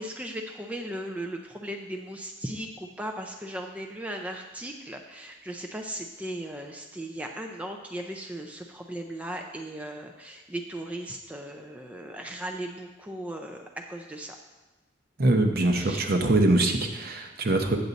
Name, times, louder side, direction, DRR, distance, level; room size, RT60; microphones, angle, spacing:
voice 1, 0.0-14.4 15.8-16.0, right 1 dB, 10° right, 2 dB, 0.5 m, -37 dB
voice 2, 15.2-17.8, right 2 dB, 55° right, 5 dB, 0.8 m, -23 dB
8.4 x 7.8 x 4.0 m, 1.2 s
head